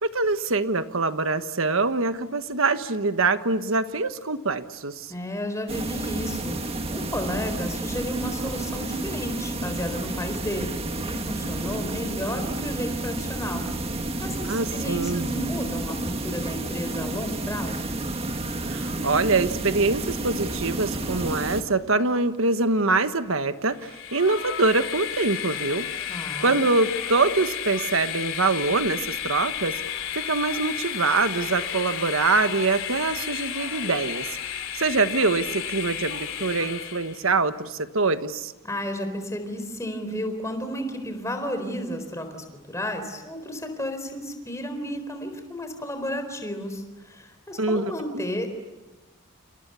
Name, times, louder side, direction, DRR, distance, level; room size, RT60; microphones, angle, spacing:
voice 1, 0.0-5.1 14.5-15.3 18.7-34.3 34.8-38.5 47.6-48.2, right 3 dB, 70° right, 10 dB, 1.3 m, -24 dB
voice 2, 5.1-13.6 14.2-17.9 26.1-26.6 38.6-48.5, equal, 15° left, 7 dB, 4.1 m, -32 dB
sound 1, 5.7-21.6, right 2 dB, 25° right, 1.8 m, -31 dB
Train, 23.8-37.2, left 9 dB, 65° left, 3.4 m, -32 dB
30.0 x 28.0 x 6.9 m, 1.1 s
head